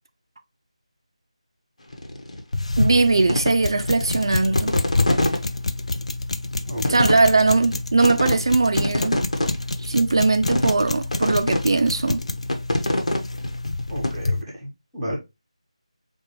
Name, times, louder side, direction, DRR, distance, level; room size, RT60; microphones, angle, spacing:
sound 1, 1.9-2.4 2.8-5.4 5.9-6.0 6.4-6.6 6.8-7.8 8.0-8.4 8.6-9.9 10.5-10.9 11.1-11.6 12.0-14.1, left 1 dB, 80° left, 1.1 m, -24 dB
sound 2, 2.5-14.4, left 2 dB, 65° left, 0.5 m, -28 dB
voice 1, 2.8-4.8 6.9-9.2 9.8-12.2, right 3 dB, 40° right, 0.3 m, -20 dB
voice 2, 6.7-7.1 13.9-15.2, equal, ahead, 0.7 m, -32 dB
4.7 x 2.2 x 3.1 m
figure-of-eight pair, 175°, 4 cm